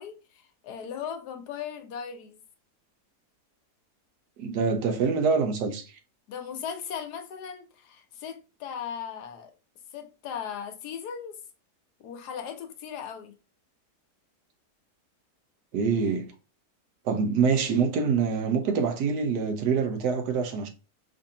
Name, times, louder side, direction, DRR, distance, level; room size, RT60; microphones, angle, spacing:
voice 1, 0.0-2.4 6.3-9.5 9.9-11.4 12.0-13.3, left 7 dB, 80° left, 1.3 m, -38 dB
voice 2, 4.4-5.9 15.7-16.3 17.0-20.7, right 5 dB, 90° right, 1.4 m, -25 dB
4.8 x 2.6 x 2.7 m
omnidirectional pair, 1.7 m